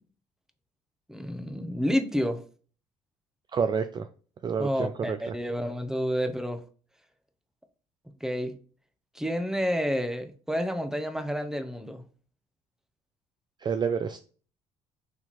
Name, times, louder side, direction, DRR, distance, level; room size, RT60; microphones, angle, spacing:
voice 1, 1.1-2.4 4.6-6.6 8.2-8.5 9.2-12.0, equal, 5° right, 0.9 m, -29 dB
voice 2, 3.5-4.1 4.4-5.2 13.6-14.2, right 6 dB, 30° right, 0.4 m, -28 dB
4.3 x 2.8 x 4.0 m
hypercardioid pair, 55°, 15 cm